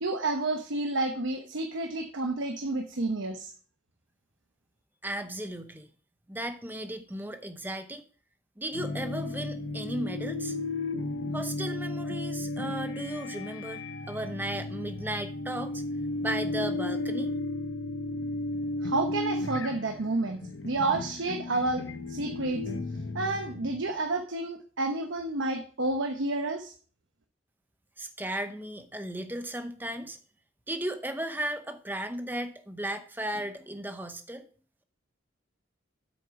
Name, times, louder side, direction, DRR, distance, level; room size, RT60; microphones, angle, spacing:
voice 1, 0.0-3.5 18.8-22.6 23.1-26.7, right 2 dB, 80° right, 4 dB, 0.9 m, -30 dB
voice 2, 5.0-5.9 6.3-8.0 8.6-10.6 11.3-15.8 16.2-17.3 28.0-30.2 30.7-34.4, right 1 dB, 10° right, 8 dB, 0.8 m, -35 dB
sound 1, 8.7-23.9, left 2 dB, 75° left, 0.8 m, -34 dB
8.3 x 6.3 x 4.8 m, 0.41 s
head